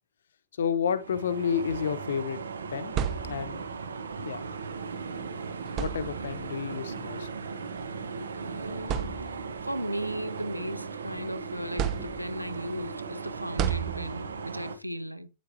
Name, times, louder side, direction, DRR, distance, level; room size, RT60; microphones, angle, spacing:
voice 1, 0.6-2.4 2.7-2.9 3.2-3.6 4.2-4.4 5.8-7.3, left 7 dB, 65° left, 0.9 m, -30 dB
sound 1, 0.9-14.8, right 5 dB, 70° right, 1.2 m, -38 dB
sound 2, 2.6-3.8 5.0-5.2 5.7-6.5 7.6-7.8 8.3-8.4 8.8-9.7 10.2-11.2 11.8-12.6 13.6-14.5, right 9 dB, 35° right, 1.0 m, -33 dB
voice 2, 8.3-15.3, equal, 90° right, 0.8 m, -36 dB
9.4 x 8.3 x 2.8 m
figure-of-eight pair, 100°, 0 cm